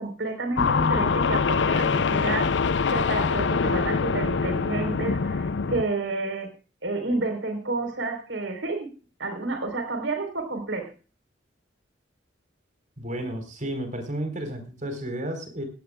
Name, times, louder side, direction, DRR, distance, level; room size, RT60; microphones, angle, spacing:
voice 1, 0.0-2.5 2.9-6.5 6.8-8.9 9.2-10.9, right 2 dB, 75° right, 5 dB, 4.2 m, -30 dB
sound 1, 0.6-5.8, left 5 dB, 65° left, 0.5 m, -24 dB
voice 2, 13.0-15.6, right 1 dB, 40° right, 7 dB, 4.3 m, -32 dB
17.5 x 16.5 x 2.4 m, 0.35 s
head